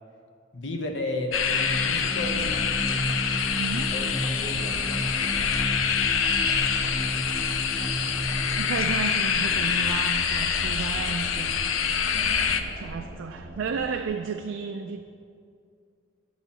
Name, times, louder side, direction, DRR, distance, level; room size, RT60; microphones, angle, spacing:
voice 1, 0.5-2.6 3.9-5.5, left 1 dB, 65° left, 3 dB, 1.0 m, -33 dB
sound 1, 1.3-12.6, left 7 dB, 90° left, 0.5 m, -26 dB
sound 2, 1.4-14.1, right 1 dB, 15° left, 1.4 m, -34 dB
voice 2, 3.6-3.9 8.6-11.6 12.8-15.0, right 5 dB, 75° right, 5 dB, 0.4 m, -32 dB
9.9 x 4.1 x 7.3 m, 2.4 s
head